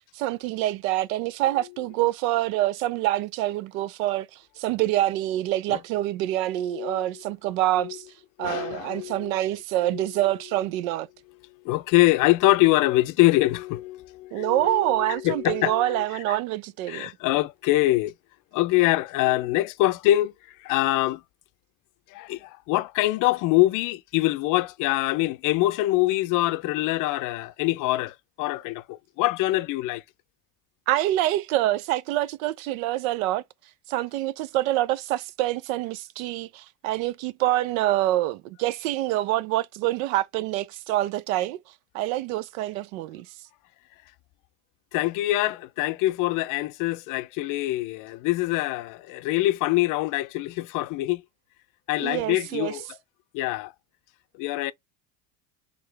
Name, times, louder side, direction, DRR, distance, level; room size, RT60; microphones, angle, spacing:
voice 1, 0.1-8.0 8.4-11.1 14.3-17.1 30.9-33.4 33.9-41.6 41.9-43.2 52.0-52.8, right 15 dB, 80° right, 0.6 m, -26 dB
voice 2, 6.7-7.0 7.8-8.0 8.4-9.4 9.8-10.1 11.6-16.4 16.9-18.1 18.5-20.3 20.6-21.2 22.1-30.0 44.9-51.2 51.9-52.8 53.3-53.7 54.4-54.7, left 17 dB, 50° left, 0.5 m, -24 dB
3.7 x 3.4 x 3.3 m
supercardioid pair, 115°, 40 cm